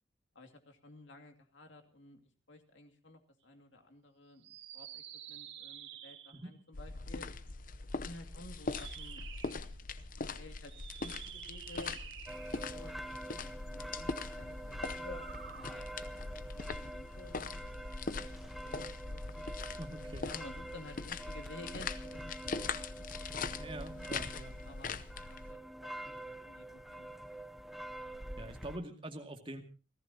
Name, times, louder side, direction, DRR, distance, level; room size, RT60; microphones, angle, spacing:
voice 1, 0.3-7.3 7.9-9.3 10.1-12.0 12.4-13.0 13.4-14.1 14.4-16.0 16.3-19.5 20.2-23.1 23.7-24.1 24.6-24.9 25.3-27.4, left 1 dB, 70° left, 4 dB, 2.6 m, -53 dB
sound 1, 4.4-6.5 8.6-9.6 10.6-12.8 14.9-15.8, right 9 dB, 60° right, 2.4 m, -49 dB
sound 2, 6.7-25.5, left 4 dB, 45° left, 0.8 m, -42 dB
sound 3, 12.3-28.8, right 1 dB, ahead, 0.9 m, -46 dB
voice 2, 19.8-20.3 23.6-24.5 28.4-29.6, right 1 dB, 30° right, 5 dB, 2.3 m, -44 dB
29.5 x 14.5 x 2.8 m, 0.33 s
head